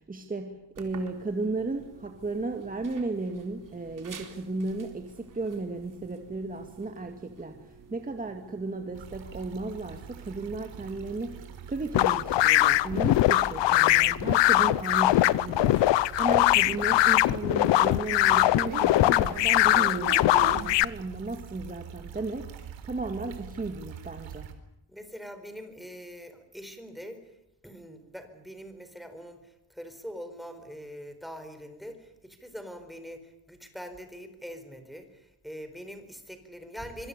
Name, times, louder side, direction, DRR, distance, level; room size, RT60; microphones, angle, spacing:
voice 1, 0.0-24.5, right 3 dB, 20° right, 5 dB, 2.1 m, -35 dB
sound 1, 0.8-20.7, right 6 dB, 45° right, 4.2 m, -46 dB
sound 2, 8.9-24.5, right 8 dB, 85° right, 4.0 m, -45 dB
sound 3, 11.9-20.8, left 15 dB, 75° left, 0.8 m, -22 dB
voice 2, 24.9-27.4 27.6-37.1, equal, ahead, 8 dB, 4.4 m, -43 dB
25.0 x 24.0 x 6.9 m, 0.88 s
cardioid pair, 140°, 44 cm